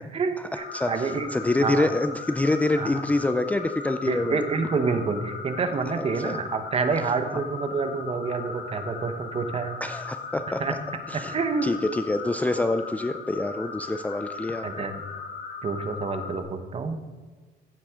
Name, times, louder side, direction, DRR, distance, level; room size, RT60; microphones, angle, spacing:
voice 1, 0.1-1.3 1.6-1.9 2.8-3.0 4.1-9.7 10.6-10.7 11.1-11.8 14.6-15.0 15.6-17.0, right 4 dB, 35° right, 9 dB, 1.1 m, -28 dB
sound 1, 0.5-16.4, left 5 dB, 65° left, 2.0 m, -38 dB
voice 2, 0.7-4.4 6.0-6.3 9.8-10.8 11.1-11.4 11.6-14.9, left 2 dB, 10° left, 9 dB, 0.4 m, -26 dB
15.5 x 7.6 x 3.7 m, 1.4 s
cardioid pair, 110°, 17 cm